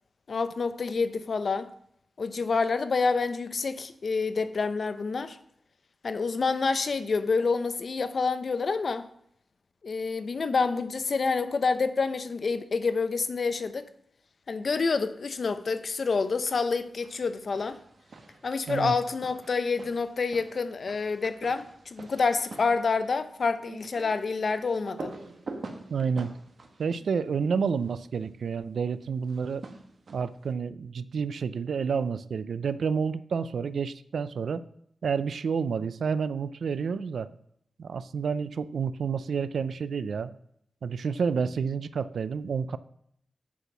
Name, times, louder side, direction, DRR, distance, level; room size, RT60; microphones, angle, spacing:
voice 1, 0.3-1.7 2.2-5.4 6.0-9.1 9.8-13.9 14.5-17.8 18.4-25.1, left 4 dB, 55° left, 0.7 m, -28 dB
sound 1, 16.2-16.7 17.0-28.0 29.2-30.5, right 3 dB, 60° right, 1.3 m, -46 dB
voice 2, 25.9-26.3 26.8-29.6 30.1-34.6 35.0-37.3 37.8-40.3 40.8-42.8, right 6 dB, 85° right, 0.5 m, -29 dB
8.4 x 6.0 x 6.0 m
wide cardioid pair, 130°, 0 cm